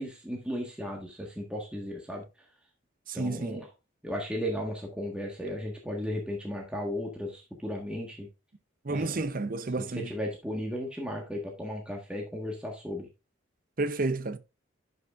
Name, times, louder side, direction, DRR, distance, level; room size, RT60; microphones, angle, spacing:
voice 1, 0.0-2.2 3.1-3.7 4.0-8.3 8.9-9.3 10.0-13.1, equal, 5° right, 1.4 m, -35 dB
voice 2, 3.1-3.6 8.8-10.1 13.8-14.4, right 3 dB, 45° right, 0.6 m, -31 dB
11.0 x 5.6 x 2.4 m
head